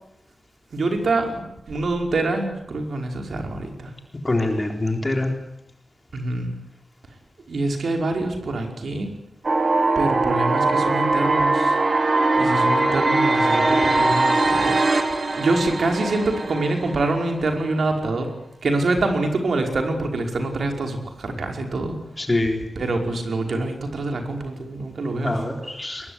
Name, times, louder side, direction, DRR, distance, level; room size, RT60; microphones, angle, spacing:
voice 1, 0.7-1.4 1.7-3.9 6.1-6.6 7.5-9.1 10.0-11.8 12.3-18.3 18.6-22.0 22.8-25.7, right 2 dB, 65° right, 3 dB, 5.3 m, -25 dB
voice 2, 4.2-5.3 22.2-22.6 25.2-26.1, left 2 dB, 20° left, 4 dB, 3.9 m, -24 dB
sound 1, 9.4-17.4, right 2 dB, 40° right, 3.0 m, -21 dB
22.5 x 21.5 x 9.9 m, 0.84 s
wide cardioid pair, 155°, 0 cm